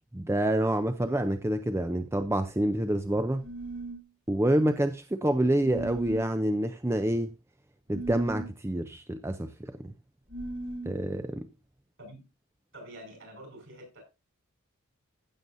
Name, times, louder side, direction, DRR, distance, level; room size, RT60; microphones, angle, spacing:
voice 1, 0.1-3.4 4.3-7.3 7.9-9.9 10.9-11.5, right 1 dB, 10° right, 0.5 m, -27 dB
sound 1, 3.4-4.0 5.6-6.3 7.9-8.5 10.3-10.9, right 2 dB, 90° right, 5.7 m, -37 dB
voice 2, 12.7-14.0, right 1 dB, 55° right, 5.4 m, -47 dB
15.5 x 7.0 x 2.6 m
head